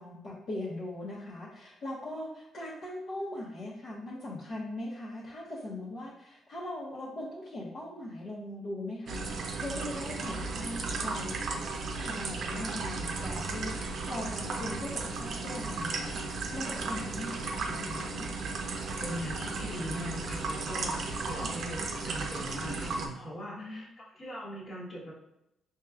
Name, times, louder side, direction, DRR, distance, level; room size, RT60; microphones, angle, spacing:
voice 1, 0.0-11.5 12.0-18.2 21.4-21.6 23.5-23.9, left 1 dB, 55° left, -7 dB, 1.1 m, -40 dB
sound 1, 9.1-23.1, right 3 dB, 60° right, 0.6 m, -35 dB
voice 2, 19.0-25.1, equal, 40° left, -5 dB, 1.3 m, -40 dB
4.6 x 3.0 x 2.3 m, 0.87 s
cardioid pair, 90°, 0 cm